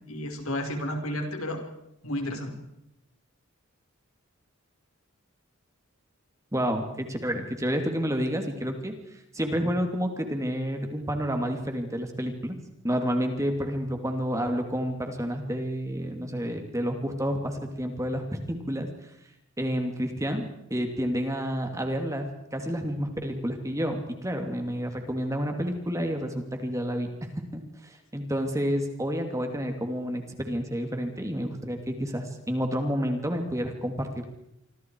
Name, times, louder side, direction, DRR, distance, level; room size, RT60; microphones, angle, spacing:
voice 1, 0.1-1.6 2.0-2.5, left 1 dB, 75° left, 4 dB, 4.8 m, -31 dB
voice 2, 6.5-8.9 9.3-12.6 12.8-18.9 19.6-22.2 22.5-34.3, equal, 15° right, 5 dB, 2.9 m, -30 dB
27.5 x 25.0 x 4.8 m, 0.81 s
head